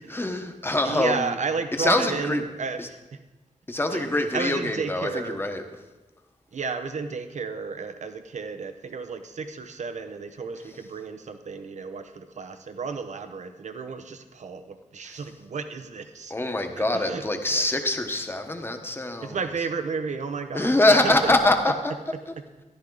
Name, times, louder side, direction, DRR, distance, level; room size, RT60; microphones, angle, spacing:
voice 1, 0.1-1.3 1.8-2.4 2.8-2.9 3.7-5.6 15.1-15.2 16.3-19.4 20.5-21.9, left 2 dB, 15° left, 5 dB, 1.2 m, -24 dB
voice 2, 0.8-3.2 3.9-5.4 6.5-16.3 16.8-17.3 17.5-17.6 19.2-20.7 21.0-21.3, right 5 dB, 65° right, 8 dB, 0.9 m, -32 dB
13.5 x 11.5 x 4.0 m, 1.1 s
wide cardioid pair, 120°, 13 cm